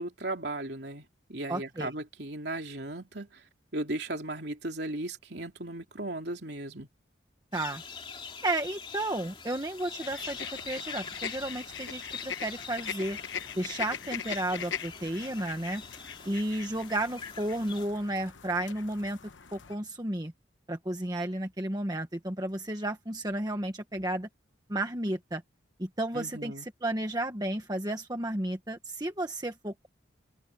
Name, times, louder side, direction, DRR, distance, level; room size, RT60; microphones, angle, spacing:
voice 1, 0.0-3.4 3.7-6.9 26.1-26.7, right 2 dB, 60° right, 3.2 m, -36 dB
voice 2, 1.5-1.9 7.5-7.8 8.4-13.2 13.6-15.8 16.2-19.2 19.5-20.3 20.7-24.3 24.7-25.4 25.8-29.9, right 1 dB, 20° right, 1.4 m, -32 dB
sound 1, 7.5-17.9, left 5 dB, 25° left, 2.9 m, -44 dB
sound 2, 10.0-19.8, left 7 dB, 80° left, 1.0 m, -41 dB
open air
head